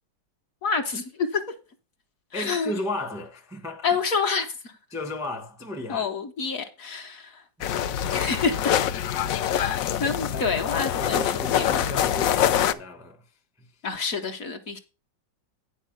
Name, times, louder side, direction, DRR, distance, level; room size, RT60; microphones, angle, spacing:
voice 1, 0.6-1.5 2.3-2.8 3.8-4.7 5.9-7.4 8.1-8.8 9.5-11.7 13.8-14.8, left 5 dB, 50° left, 1.2 m, -28 dB
voice 2, 2.3-4.0 4.9-6.1 9.4-9.7 10.3-10.5 11.0-13.2 13.6-13.7, left 1 dB, 5° right, 0.5 m, -35 dB
sound 1, 7.6-12.7, left 10 dB, 80° left, 0.7 m, -25 dB
10.0 x 4.7 x 5.8 m
omnidirectional pair, 2.1 m